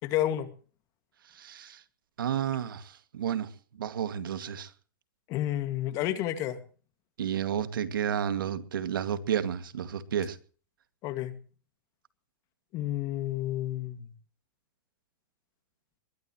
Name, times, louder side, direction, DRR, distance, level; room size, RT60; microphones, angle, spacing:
voice 1, 0.0-0.5 5.3-6.6 11.0-11.3 12.7-14.1, left 13 dB, 30° left, 2.1 m, -30 dB
voice 2, 1.3-1.8 2.2-3.5 3.8-4.7 7.2-10.4, right 9 dB, 85° right, 2.3 m, -31 dB
21.5 x 21.0 x 3.1 m
supercardioid pair, 160°, 11 cm